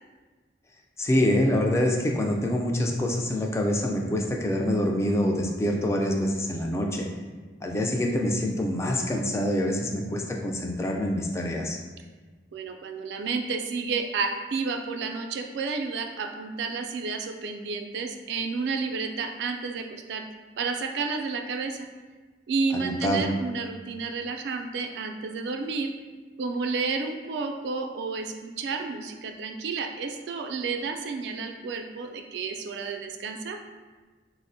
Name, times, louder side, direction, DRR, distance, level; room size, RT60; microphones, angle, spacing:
voice 1, 1.0-7.1 7.6-11.8 22.7-23.2, left 1 dB, 15° left, 1 dB, 0.3 m, -26 dB
voice 2, 12.5-20.3 20.6-21.9 22.5-25.9 26.4-33.6, right 4 dB, 70° right, 5 dB, 0.3 m, -31 dB
4.1 x 2.0 x 2.6 m, 1.4 s
head